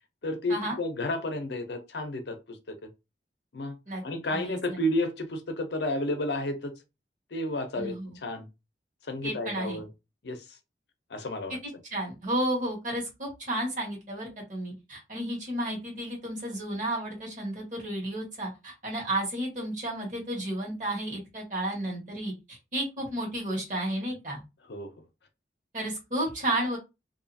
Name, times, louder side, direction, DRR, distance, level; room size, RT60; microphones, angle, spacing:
voice 1, 0.2-2.9 3.5-3.8 4.0-6.7 7.3-7.9 8.2-8.5 9.1-9.9 10.2-10.4 11.1-11.6 24.7-24.9, left 1 dB, 70° left, 0.6 m, -31 dB
voice 2, 4.3-4.8 7.7-8.2 9.2-9.8 11.5-11.6 11.9-24.4 25.7-26.8, right 1 dB, 45° right, 1.3 m, -32 dB
2.6 x 2.4 x 2.6 m
head